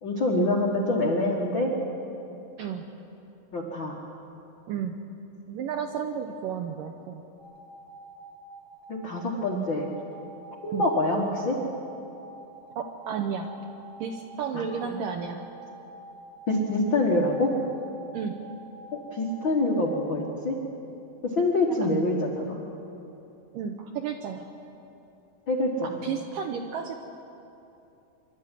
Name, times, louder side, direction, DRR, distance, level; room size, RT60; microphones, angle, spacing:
voice 1, 0.0-1.7 3.5-4.0 8.9-9.9 10.6-11.6 14.8-14.9 16.5-17.5 19.1-20.6 21.2-22.6 25.5-26.1, left 2 dB, 65° left, -1 dB, 1.1 m, -25 dB
voice 2, 5.5-7.2 10.7-10.9 12.8-13.5 14.0-15.4 18.1-18.3 21.8-21.9 23.5-24.5 25.8-26.9, right 7 dB, 75° right, 4 dB, 2.0 m, -32 dB
sound 1, 7.4-19.8, right 3 dB, 40° right, 4.1 m, -47 dB
25.5 x 12.5 x 9.2 m, 2.9 s
omnidirectional pair, 5.0 m